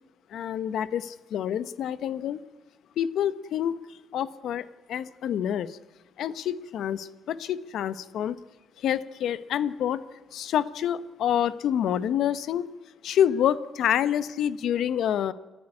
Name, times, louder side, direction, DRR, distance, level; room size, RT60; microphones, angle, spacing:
voice 1, 0.3-2.4 3.0-3.7 4.1-5.8 6.2-8.4 8.8-10.0 10.3-12.7 13.0-15.3, left 10 dB, 75° left, 14 dB, 1.0 m, -27 dB
29.5 x 11.0 x 9.8 m, 1.3 s
cardioid pair, 90°, 0 cm